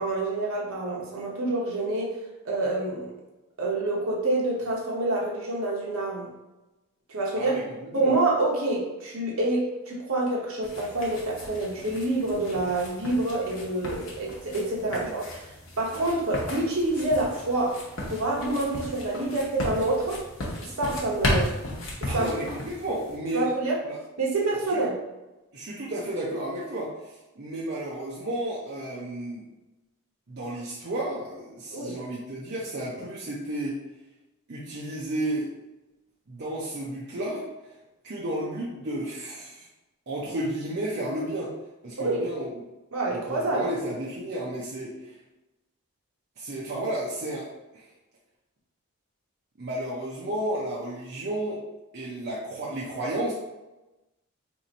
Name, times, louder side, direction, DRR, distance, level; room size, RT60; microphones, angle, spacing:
voice 1, 0.0-2.1 2.4-3.1 3.6-6.3 7.1-7.5 7.9-15.2 15.8-17.8 18.1-20.2 20.6-21.5 22.0-22.3 23.3-23.8 24.2-25.0 31.7-32.0 42.0-42.3 42.9-43.7, right 2 dB, 70° right, -3 dB, 0.9 m, -27 dB
sound 1, 10.6-23.2, left 1 dB, 65° left, 0.9 m, -35 dB
voice 2, 22.1-23.5 23.9-24.0 25.5-29.4 30.3-33.8 34.5-35.5 36.3-37.7 38.0-39.7 40.1-41.5 41.8-42.5 43.1-45.2 46.4-47.8 49.6-51.6 51.9-53.3, right 1 dB, 50° right, -5 dB, 0.5 m, -32 dB
2.9 x 2.5 x 4.0 m, 1.0 s
head